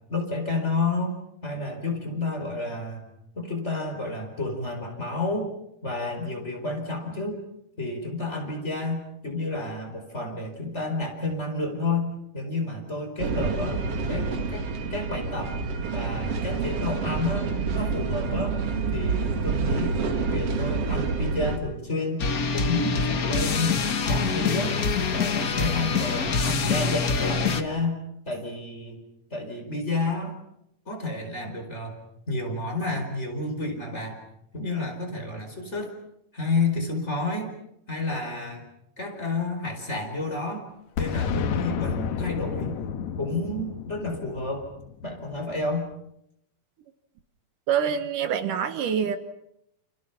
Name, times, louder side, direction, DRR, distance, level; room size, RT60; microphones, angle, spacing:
voice 1, 0.1-3.1 3.3-5.5 5.8-7.4 7.8-15.6 15.9-18.6 18.9-20.0 20.3-22.2 22.5-23.8 24.0-24.8 25.1-28.0 28.3-29.0 29.3-30.4 30.9-32.0 32.3-34.2 34.5-35.9 36.3-37.5 37.9-38.7 39.0-40.7 41.0-42.7 43.2-44.7 45.0-45.9, left 2 dB, 20° left, 2 dB, 4.8 m, -30 dB
sound 1, 13.2-21.6, right 4 dB, 50° right, 2.8 m, -28 dB
sound 2, 22.2-27.6, left 5 dB, 50° left, 1.1 m, -25 dB
Boom, 41.0-45.6, left 7 dB, 65° left, 2.4 m, -31 dB
voice 2, 47.7-49.2, right 8 dB, 75° right, 10 dB, 2.8 m, -25 dB
29.5 x 29.0 x 5.9 m, 0.78 s
omnidirectional pair, 3.8 m